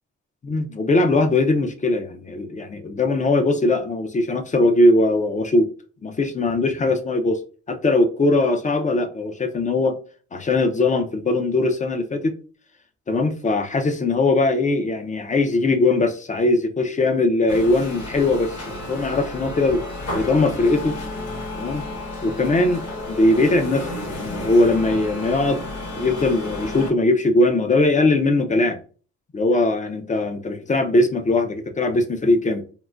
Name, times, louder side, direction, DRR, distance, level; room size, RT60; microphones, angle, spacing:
voice 1, 0.4-5.7 6.0-7.4 7.7-9.9 10.3-12.3 13.1-19.8 20.1-21.0 21.6-21.9 22.2-25.6 26.0-28.8 29.3-32.6, left 2 dB, 25° left, 0.5 m, -20 dB
sound 1, 17.5-26.9, left 1 dB, 55° left, 1.5 m, -32 dB
3.7 x 2.1 x 2.3 m
cardioid pair, 90°, 30 cm